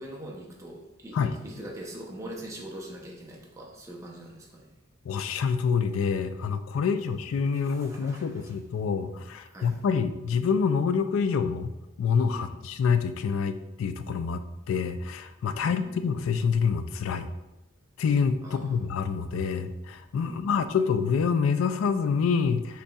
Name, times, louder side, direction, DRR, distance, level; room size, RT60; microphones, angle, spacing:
voice 1, 0.0-4.7 6.8-6.9 7.5-8.5 9.5-9.7 12.3-12.6 15.6-16.0 18.4-18.8 20.3-20.6, right 1 dB, 15° right, -2 dB, 0.6 m, -43 dB
voice 2, 5.1-11.7 12.0-17.3 18.0-22.8, left 6 dB, 85° left, 10 dB, 0.3 m, -27 dB
5.3 x 4.0 x 2.3 m, 0.96 s
head